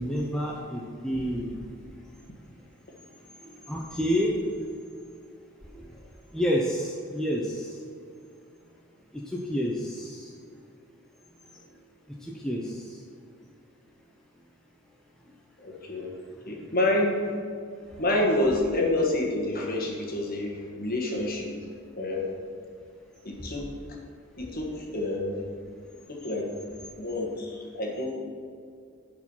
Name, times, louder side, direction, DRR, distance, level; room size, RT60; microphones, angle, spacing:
voice 1, 0.0-1.6 3.7-4.4 5.7-5.8 6.3-7.7 9.3-10.3 12.2-13.0, equal, 5° left, -3 dB, 0.7 m, -29 dB
voice 2, 15.6-16.1 16.4-17.4 18.0-21.5 22.0-22.3 23.2-23.7 24.4-25.4 26.1-26.5 26.9-28.1, left 1 dB, 40° left, -1 dB, 1.6 m, -28 dB
10.5 x 4.8 x 5.6 m, 2.3 s
head